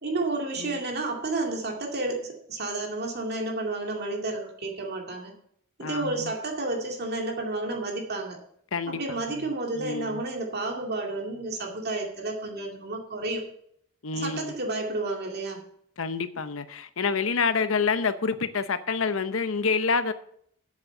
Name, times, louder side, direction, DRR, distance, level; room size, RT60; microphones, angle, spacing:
voice 1, 0.0-5.3 5.8-8.4 8.9-13.4 14.1-15.6, right 2 dB, 50° right, 2.3 m, -31 dB
voice 2, 5.8-6.3 8.7-9.0 9.3-10.2 14.0-14.5 16.0-20.1, left 5 dB, 75° left, 0.8 m, -28 dB
8.1 x 7.4 x 7.8 m
head